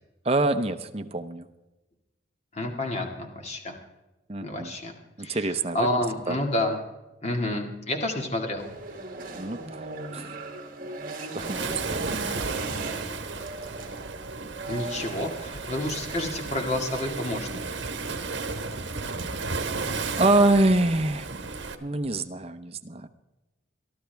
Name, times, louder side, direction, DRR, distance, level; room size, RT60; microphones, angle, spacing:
voice 1, 0.2-1.5 4.3-4.7 5.2-5.9 6.3-6.4 9.3-10.4 11.2-12.2 18.9-19.3 20.2-21.5 21.8-23.1, right 2 dB, 30° right, 8 dB, 0.8 m, -26 dB
voice 2, 2.5-3.7 4.4-4.9 5.2-5.4 5.7-6.8 7.2-8.8 14.7-17.8, left 1 dB, 35° left, 3 dB, 2.1 m, -29 dB
sound 1, 8.6-16.7, right 3 dB, 45° right, 2.3 m, -39 dB
Waves surf, 11.4-21.7, right 4 dB, 70° right, 1.3 m, -33 dB
22.5 x 13.0 x 3.5 m, 1.0 s
head